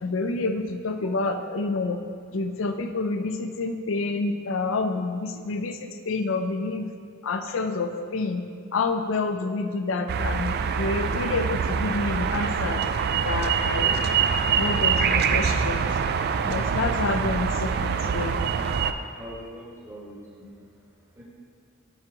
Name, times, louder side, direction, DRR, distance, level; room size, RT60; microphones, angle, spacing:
voice 1, 0.0-2.0 2.3-6.9 7.2-8.4 8.7-12.8 13.2-14.0 14.6-15.9 16.5-18.4, left 3 dB, 65° left, 7 dB, 0.5 m, -28 dB
sound 1, 10.1-18.9, right 6 dB, 50° right, 0.3 m, -25 dB
voice 2, 19.1-20.5 21.1-21.2, equal, 15° right, -5 dB, 1.5 m, -42 dB
9.5 x 4.6 x 3.8 m, 2.1 s
head